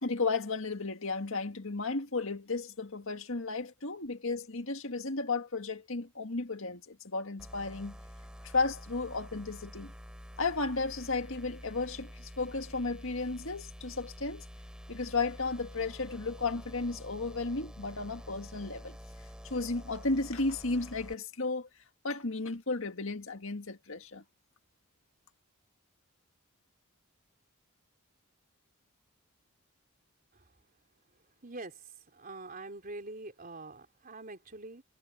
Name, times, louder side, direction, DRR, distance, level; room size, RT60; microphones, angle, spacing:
voice 1, 0.0-8.0 8.4-9.9 10.4-14.4 14.9-19.0 19.4-21.7 22.0-24.2, left 3 dB, 60° left, 2.0 m, -34 dB
sound 1, 7.4-21.1, equal, 5° right, 3.8 m, -48 dB
voice 2, 31.4-31.8 32.1-34.8, right 2 dB, 40° right, 3.8 m, -44 dB
head